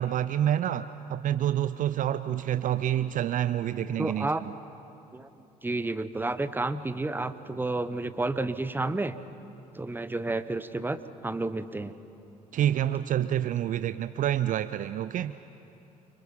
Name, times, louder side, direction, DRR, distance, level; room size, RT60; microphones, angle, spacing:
voice 1, 0.0-4.3 12.5-15.3, right 11 dB, 40° right, 13 dB, 0.6 m, -28 dB
voice 2, 4.0-4.4 5.1-5.3 5.6-9.1 9.7-11.9, right 2 dB, 10° right, 13 dB, 1.0 m, -31 dB
29.5 x 25.5 x 5.5 m, 2.9 s
figure-of-eight pair, 55°, 20 cm